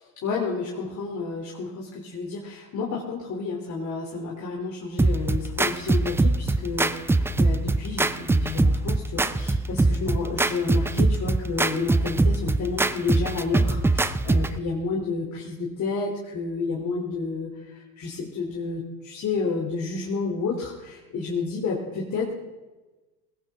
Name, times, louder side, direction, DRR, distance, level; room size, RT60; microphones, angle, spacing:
voice 1, 0.2-22.3, left 4 dB, 40° left, -2 dB, 3.3 m, -30 dB
sound 1, 5.0-14.6, right 2 dB, 5° right, 0.4 m, -23 dB
20.0 x 16.5 x 3.7 m, 1.2 s
hypercardioid pair, 95°, 46 cm